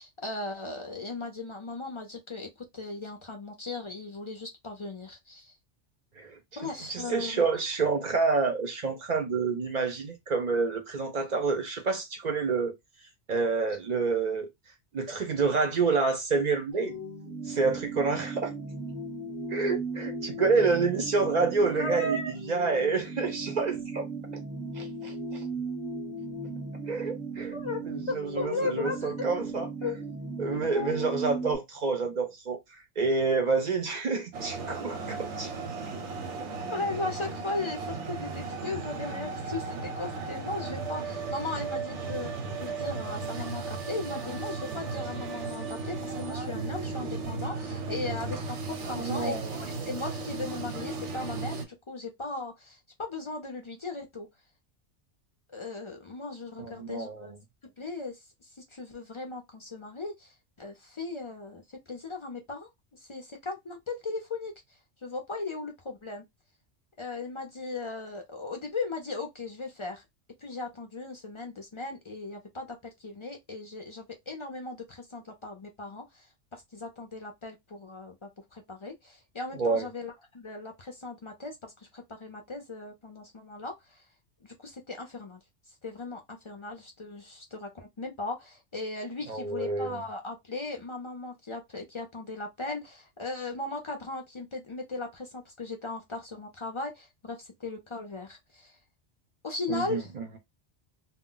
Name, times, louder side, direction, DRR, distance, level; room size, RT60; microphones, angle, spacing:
voice 1, 0.0-2.5 2.7-5.6 6.6-7.4 21.7-22.3 27.5-27.8 28.1-29.3 29.8-30.0 30.7-31.1 36.7-54.3 55.5-57.3 57.8-64.5 65.0-66.2 67.0-70.0 70.4-84.0 84.4-85.4 85.8-98.8 99.4-100.1, left 3 dB, 50° left, 0.3 m, -37 dB
voice 2, 6.2-12.7 13.3-14.5 14.9-17.0 17.4-18.5 19.5-22.2 22.5-24.1 24.7-25.5 26.9-27.6 27.9-29.7 30.4-35.5 48.9-49.5 56.6-57.3 79.6-79.9 89.3-90.0 99.7-100.3, right 4 dB, 50° right, 0.5 m, -28 dB
sound 1, 16.7-31.5, right 3 dB, 5° right, 0.8 m, -37 dB
sound 2, 34.3-51.6, right 4 dB, 85° right, 1.0 m, -35 dB
2.2 x 2.1 x 3.7 m
omnidirectional pair, 1.2 m